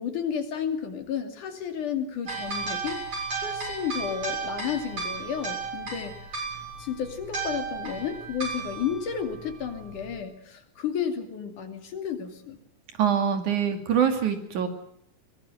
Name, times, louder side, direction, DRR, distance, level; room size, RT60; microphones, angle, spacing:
voice 1, 0.0-3.0 3.4-6.2 6.8-12.6, left 8 dB, 75° left, 6 dB, 4.1 m, -32 dB
sound 1, 2.3-10.2, right 4 dB, 45° right, 8.2 m, -34 dB
voice 2, 13.0-14.7, right 8 dB, 70° right, 6 dB, 3.9 m, -24 dB
22.5 x 19.5 x 7.9 m, 0.69 s
omnidirectional pair, 3.6 m